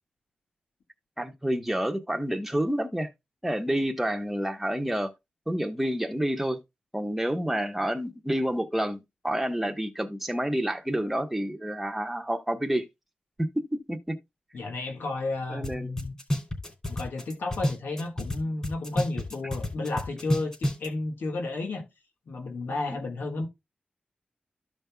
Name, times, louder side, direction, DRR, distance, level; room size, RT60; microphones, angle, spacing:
voice 1, 1.2-3.1 3.4-5.1 5.5-6.6 6.9-12.8 13.4-14.2 15.5-15.9, equal, 5° right, 1.0 m, -29 dB
voice 2, 14.5-16.1 16.9-21.9 22.3-23.5, left 2 dB, 90° left, 1.7 m, -32 dB
sound 1, 15.6-15.7 16.0-18.4 18.6-20.9, equal, 20° left, 3.0 m, -29 dB
14.0 x 5.3 x 2.3 m
wide cardioid pair, 135°, 3 cm